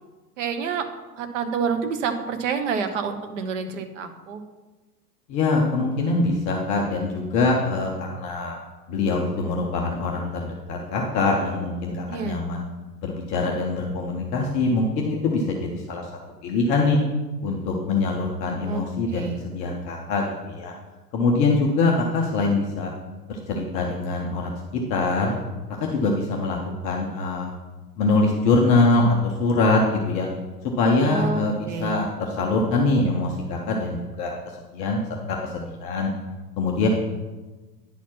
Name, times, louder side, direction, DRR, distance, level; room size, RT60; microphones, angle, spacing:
voice 1, 0.4-0.9 1.2-4.4 12.1-12.4 18.6-18.8 19.1-19.4 21.9-22.0 31.0-32.0, right 6 dB, 50° right, 7 dB, 0.9 m, -28 dB
voice 2, 5.3-8.6 8.9-12.6 13.0-16.1 16.4-17.0 17.4-20.7 21.1-22.9 23.3-24.6 24.9-25.3 25.8-26.6 26.8-27.5 28.0-30.3 30.8-34.3 34.7-35.0 35.3-36.1 36.6-36.9, left 3 dB, 15° left, -1 dB, 0.4 m, -23 dB
9.9 x 4.1 x 5.8 m, 1.2 s
figure-of-eight pair, 95°, 48 cm